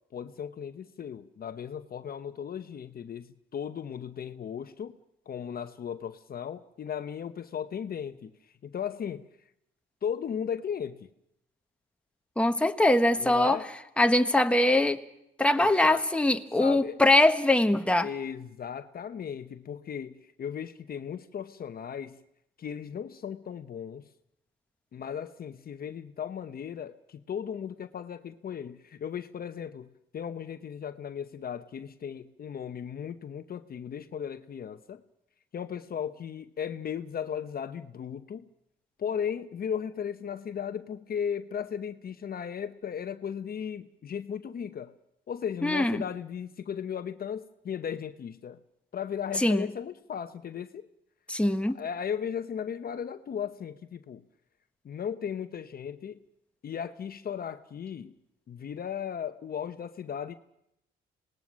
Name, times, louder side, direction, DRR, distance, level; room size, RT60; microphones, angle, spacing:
voice 1, 0.1-5.0 5.3-8.3 8.6-9.3 10.0-11.1 13.2-13.7 15.5-16.0 16.6-17.0 18.0-22.2 22.6-24.1 24.9-35.0 35.5-38.4 39.0-44.9 45.3-48.6 48.9-50.9 51.7-54.2 54.8-56.2 56.6-58.1 58.5-60.3, left 8 dB, 50° left, 10 dB, 0.9 m, -36 dB
voice 2, 12.4-13.6 14.0-15.0 15.4-18.1 45.6-46.0 49.4-49.7 51.3-51.8, left 1 dB, 5° left, 7 dB, 1.3 m, -22 dB
26.5 x 19.5 x 6.3 m, 0.81 s
cardioid pair, 90°, 20 cm